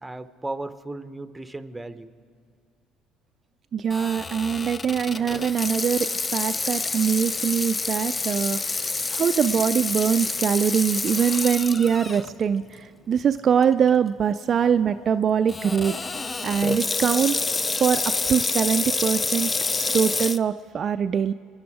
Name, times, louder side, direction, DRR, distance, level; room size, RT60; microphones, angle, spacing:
voice 1, 0.0-2.1, right 2 dB, 10° right, 12 dB, 0.8 m, -35 dB
voice 2, 3.7-17.5 17.8-19.5 19.9-21.3, right 7 dB, 45° right, 9 dB, 0.3 m, -23 dB
Water tap faucet / Sink (filling or washing), 3.9-12.3 12.8-12.9 13.6-13.9 15.5-20.4, left 3 dB, 25° left, 0.4 m, -28 dB
26.0 x 10.0 x 4.9 m, 2.1 s
hypercardioid pair, 70°, 0 cm